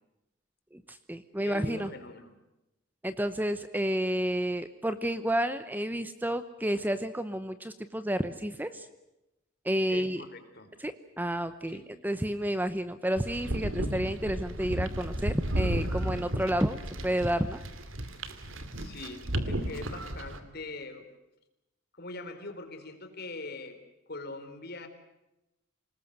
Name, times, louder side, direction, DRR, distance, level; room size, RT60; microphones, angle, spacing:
voice 1, 0.7-1.9 3.0-8.9 9.6-10.2 10.8-17.6, equal, 10° right, 11 dB, 0.8 m, -30 dB
voice 2, 1.4-2.3 9.9-10.7 11.7-11.9 18.8-21.1 21.9-23.8 24.1-24.9, left 2 dB, 50° left, 7 dB, 3.8 m, -42 dB
sound 1, 13.2-20.4, right 1 dB, 70° right, 2.4 m, -33 dB
27.5 x 19.5 x 7.9 m, 0.94 s
head